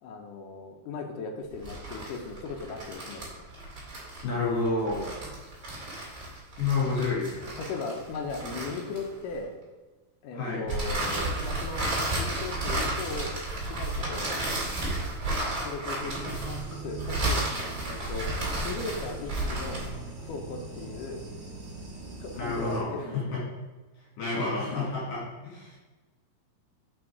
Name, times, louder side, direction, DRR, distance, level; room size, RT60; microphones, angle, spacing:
voice 1, 0.0-3.3 6.8-6.9 7.6-9.5 10.2-11.9 12.2-13.3 13.7-14.3 15.6-17.5 17.9-19.8 20.2-21.2 22.1-23.4, left 4 dB, 90° left, 2 dB, 1.8 m, -37 dB
sound 1, 1.5-9.3 10.7-20.0, right 1 dB, 25° right, 2.2 m, -32 dB
voice 2, 4.2-5.1 6.6-7.6 10.3-10.6 22.3-23.4 24.2-25.8, left 3 dB, 60° left, -6 dB, 3.8 m, -29 dB
sound 2, 15.9-22.8, right 3 dB, 60° right, 0.7 m, -41 dB
6.2 x 5.6 x 4.7 m, 1.2 s
omnidirectional pair, 4.7 m